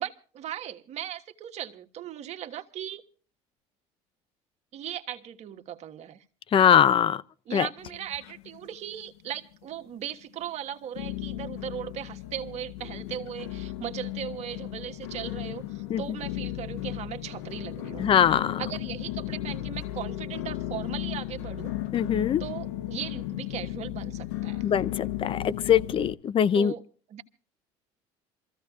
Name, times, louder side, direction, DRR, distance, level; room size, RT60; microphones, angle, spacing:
voice 1, 0.0-3.0 4.7-6.2 7.5-18.1 18.6-21.7 22.4-24.6 26.5-26.8 27.1-27.2, right 10 dB, 55° right, 1.4 m, -38 dB
voice 2, 6.5-7.2 7.5-7.7 15.9-16.0 18.0-18.6 21.9-22.4 24.6-26.7, left 9 dB, 40° left, 0.6 m, -22 dB
sound 1, 7.8-8.7 9.0-9.6 10.1-10.2 11.0-26.1, left 14 dB, 90° left, 0.7 m, -35 dB
27.0 x 15.0 x 2.4 m
supercardioid pair, 85°, 14 cm